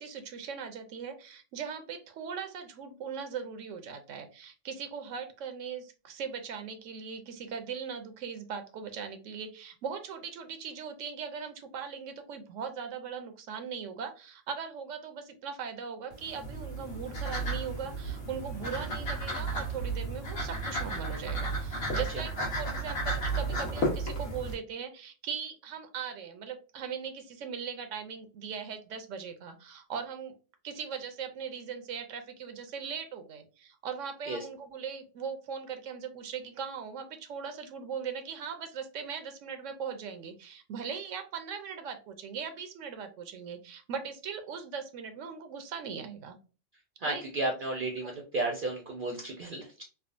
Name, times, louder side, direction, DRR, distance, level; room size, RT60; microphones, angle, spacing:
voice 1, 0.0-30.3 30.6-46.4 47.1-47.2 48.0-48.1, right 6 dB, 85° right, 7 dB, 0.9 m, -39 dB
sound 1, 16.1-24.5, right 2 dB, 55° left, 1.2 m, -33 dB
voice 2, 47.0-49.8, right 2 dB, 55° right, 1 dB, 0.6 m, -33 dB
3.4 x 2.0 x 2.4 m, 0.35 s
omnidirectional pair, 1.3 m